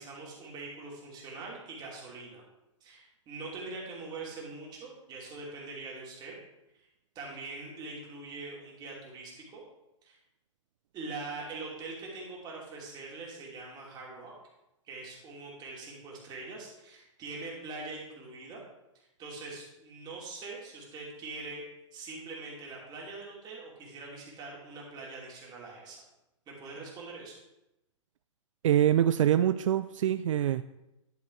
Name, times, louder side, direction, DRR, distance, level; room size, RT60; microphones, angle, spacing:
voice 1, 0.0-2.4 2.8-6.3 7.1-9.6 10.0-10.2 10.9-14.3 14.9-18.6 19.2-21.6 21.9-26.0 26.5-27.4, right 3 dB, 25° right, 2.8 m, -43 dB
voice 2, 28.6-30.6, right 11 dB, 70° right, 0.4 m, -24 dB
11.0 x 4.9 x 4.7 m
hypercardioid pair, 135°, 17 cm